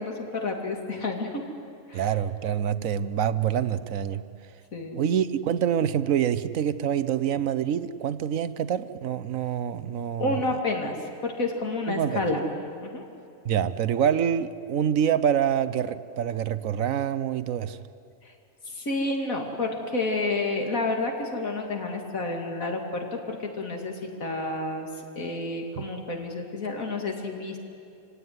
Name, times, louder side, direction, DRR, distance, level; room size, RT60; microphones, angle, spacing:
voice 1, 0.0-1.4 1.9-2.0 4.7-5.0 10.2-11.0 11.2-12.4 12.8-13.0 18.2-18.3 18.7-24.9 25.2-27.6, left 2 dB, 70° left, 2 dB, 3.0 m, -30 dB
voice 2, 1.9-4.2 5.0-10.3 11.9-12.2 13.4-17.8 25.8-25.9, right 9 dB, 70° right, 14 dB, 1.2 m, -26 dB
27.0 x 16.5 x 9.6 m, 2.6 s
omnidirectional pair, 1.5 m